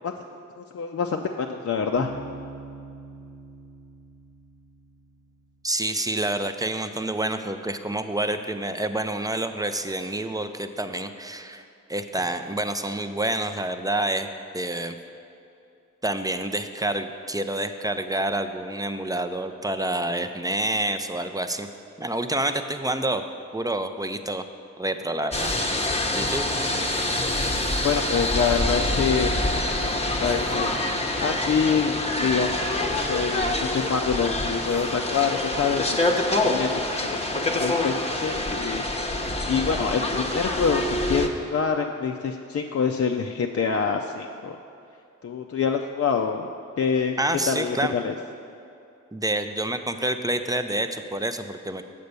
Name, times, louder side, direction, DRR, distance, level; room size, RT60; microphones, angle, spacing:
voice 1, 0.6-2.1 27.8-29.3 29.9-30.7 31.2-38.8 39.5-44.6 45.2-46.5 46.8-47.2 47.5-48.1, left 6 dB, 50° left, 3 dB, 0.5 m, -26 dB
Bass guitar, 2.0-5.6, right 3 dB, 45° right, 1.0 m, -43 dB
voice 2, 5.6-11.6 11.9-14.3 14.5-14.9 16.0-21.7 22.0-23.2 23.5-24.4 24.8-25.5 25.8-25.9 26.1-26.5 47.2-47.9 49.1-51.9, right 1 dB, 10° right, 8 dB, 0.5 m, -28 dB
sound 1, 25.3-41.3, left 1 dB, 20° left, 0.9 m, -26 dB
6.8 x 5.2 x 6.7 m, 2.6 s
cardioid pair, 40°, 32 cm